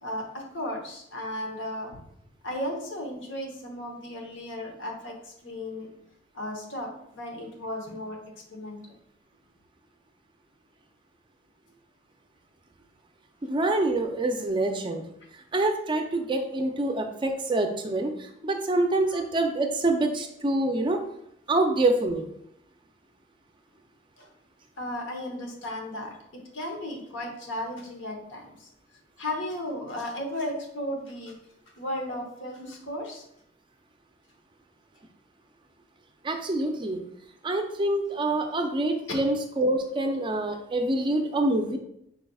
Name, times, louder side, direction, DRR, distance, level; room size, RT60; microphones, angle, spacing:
voice 1, 0.0-2.0 2.4-5.9 6.3-8.2 8.5-8.9 19.1-19.2 24.2-24.3 24.8-28.7 29.2-31.4 31.8-33.2 39.1-39.2, left 1 dB, 75° left, 1 dB, 1.1 m, -35 dB
voice 2, 13.4-15.0 15.5-21.0 21.5-22.2 36.2-37.0 37.4-41.8, right 2 dB, 25° right, 4 dB, 0.4 m, -26 dB
5.3 x 4.1 x 2.3 m, 0.75 s
head